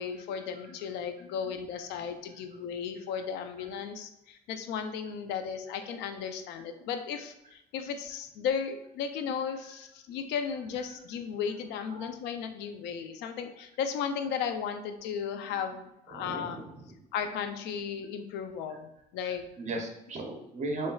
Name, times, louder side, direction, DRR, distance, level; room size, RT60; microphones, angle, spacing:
voice 1, 0.0-16.6 17.1-19.5, left 7 dB, 90° left, 7 dB, 0.5 m, -35 dB
voice 2, 16.1-17.0 19.2-20.9, right 2 dB, 45° right, 2 dB, 0.9 m, -37 dB
4.3 x 3.2 x 2.3 m, 0.83 s
cardioid pair, 110°, 17 cm